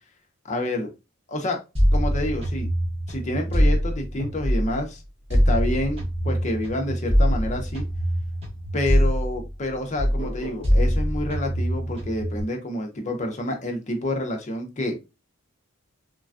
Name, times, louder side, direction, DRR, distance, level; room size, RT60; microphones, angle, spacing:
voice 1, 0.5-0.9 1.3-1.6 1.9-2.7 3.1-5.0 5.3-7.8 8.7-15.0, left 1 dB, 30° left, 0.5 m, -28 dB
sound 1, 1.8-4.9 5.3-9.7 10.0-12.4, equal, 25° right, 0.8 m, -23 dB
3.2 x 2.2 x 2.4 m
head